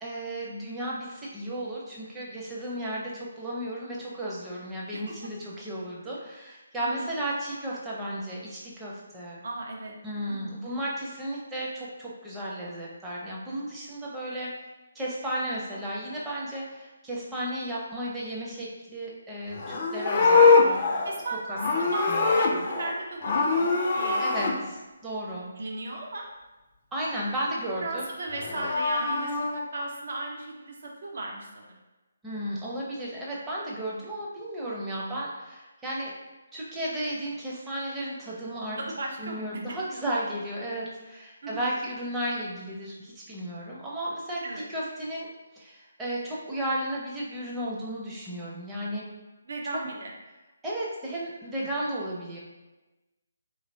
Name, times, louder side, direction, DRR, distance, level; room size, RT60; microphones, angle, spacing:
voice 1, 0.0-9.4 10.0-14.5 14.9-21.0 21.5-21.6 22.1-22.6 24.2-25.5 26.9-28.1 32.2-36.1 36.5-38.8 39.2-44.4 44.7-45.3 45.5-49.1 49.7-49.8 50.6-52.4, right 1 dB, 10° right, -6 dB, 0.6 m, -34 dB
voice 2, 9.4-10.0 10.4-10.5 21.0-24.2 25.6-26.2 27.8-30.7 31.0-31.7 38.8-39.4 39.7-39.8 41.4-41.7 44.4-44.6 49.5-50.1, right 2 dB, 55° right, 0 dB, 0.6 m, -36 dB
Livestock farm animals working animals, 19.5-22.9 23.2-24.5 28.3-29.5, left 4 dB, 40° left, 0.4 m, -23 dB
3.2 x 2.6 x 2.7 m, 1.1 s
figure-of-eight pair, 145°, 0 cm